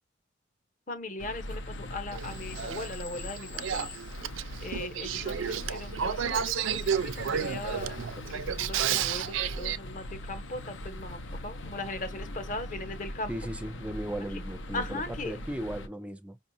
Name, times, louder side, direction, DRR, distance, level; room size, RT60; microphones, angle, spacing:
voice 1, 0.9-3.9 4.6-8.0 8.3-13.3 14.7-15.4, left 2 dB, 40° left, 0.9 m, -39 dB
sound 1, 1.2-15.9, left 1 dB, 75° left, 0.7 m, -40 dB
Male speech man speaking / Female speech woman speaking / Conversation, 2.1-9.8, right 8 dB, 80° right, 0.4 m, -32 dB
voice 2, 13.3-16.4, right 1 dB, 5° right, 0.4 m, -37 dB
5.5 x 2.4 x 2.6 m
head